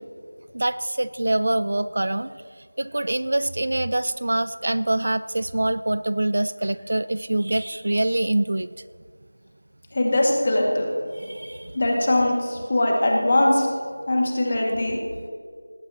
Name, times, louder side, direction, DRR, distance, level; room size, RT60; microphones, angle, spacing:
voice 1, 0.5-2.3 2.8-8.7 11.1-11.7, right 1 dB, 45° right, 14 dB, 0.3 m, -25 dB
voice 2, 9.9-10.9 11.7-13.7 14.1-15.0, left 1 dB, 30° left, -1 dB, 2.1 m, -21 dB
19.0 x 17.0 x 3.0 m, 2.1 s
figure-of-eight pair, 180°, 0 cm